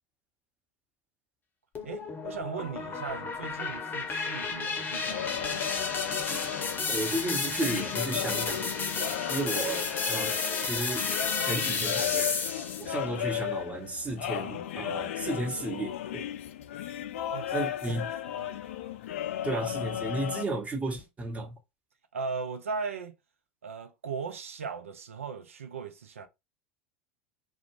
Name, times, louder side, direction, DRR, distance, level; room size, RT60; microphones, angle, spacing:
sound 1, 1.7-12.9, left 4 dB, 25° left, 0.7 m, -32 dB
voice 1, 1.8-5.8 17.3-17.5 17.9-18.0 18.3-18.6 22.1-23.1 23.6-26.3, right 5 dB, 90° right, 0.5 m, -38 dB
sound 2, 5.0-20.4, left 11 dB, 75° left, 0.3 m, -35 dB
voice 2, 6.9-8.8 9.3-10.3 10.6-11.1 11.4-12.4 12.8-16.2 17.5-18.1 19.4-21.6, right 2 dB, 20° right, 1.1 m, -33 dB
2.4 x 2.3 x 3.1 m
hypercardioid pair, 85°, 7 cm